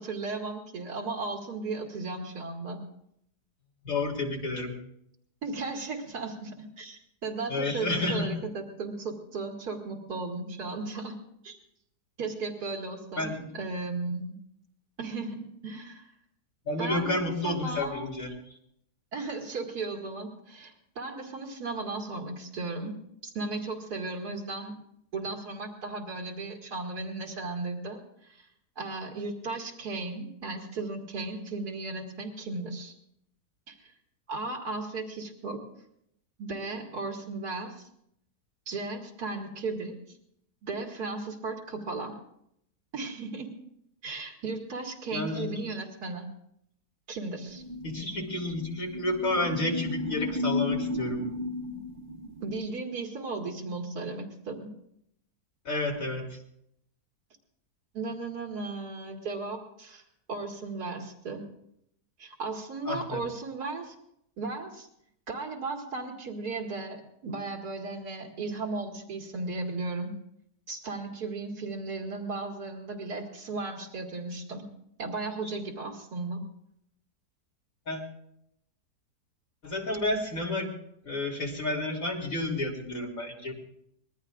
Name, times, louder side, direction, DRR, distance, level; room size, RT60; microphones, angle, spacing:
voice 1, 0.0-2.8 5.4-11.2 11.4-11.6 12.2-14.4 15.0-16.0 16.8-18.1 19.1-24.7 25.1-28.5 28.8-32.9 33.7-33.8 34.3-35.6 36.4-37.9 38.7-40.2 40.6-42.2 42.9-43.5 44.0-46.3 47.1-47.6 52.4-54.7 57.9-60.0 60.3-61.4 62.2-63.9 64.4-64.9 65.3-70.2 70.7-74.6 75.0-76.4, right 3 dB, 75° right, 1 dB, 2.6 m, -35 dB
voice 2, 3.8-4.8 7.5-8.3 13.2-13.5 16.7-18.3 45.1-45.6 47.8-51.2 55.7-56.4 62.9-63.2 77.9-78.1 79.6-80.7 81.1-83.5, left 2 dB, 55° left, -1 dB, 3.6 m, -30 dB
sound 1, 47.5-52.6, left 2 dB, 30° right, 1.3 m, -34 dB
25.0 x 20.0 x 2.5 m, 0.75 s
omnidirectional pair, 1.7 m